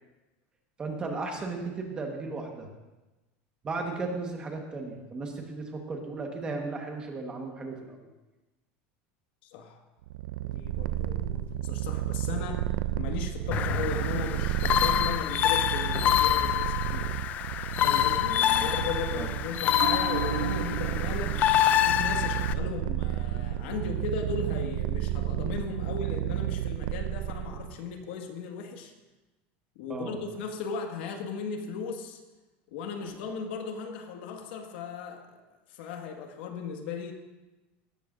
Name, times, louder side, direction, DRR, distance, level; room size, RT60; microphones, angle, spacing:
voice 1, 0.8-2.7 3.6-8.1 18.3-18.7 19.1-19.3 29.9-30.2 33.0-33.1, right 3 dB, 15° right, 2 dB, 1.4 m, -35 dB
voice 2, 9.4-9.8 10.4-12.7 13.0-17.1 17.8-21.4 21.7-28.9 29.8-32.2 32.7-35.4 35.7-37.1, left 6 dB, 75° left, 3 dB, 1.8 m, -37 dB
Purr, 10.1-27.8, right 13 dB, 85° right, 0.4 m, -32 dB
sound 1, 13.5-22.5, left 12 dB, 30° left, 0.3 m, -26 dB
sound 2, 19.7-26.7 27.0-27.1, right 9 dB, 45° right, 0.8 m, -40 dB
18.0 x 13.5 x 2.6 m, 1.1 s
supercardioid pair, 175°, 6 cm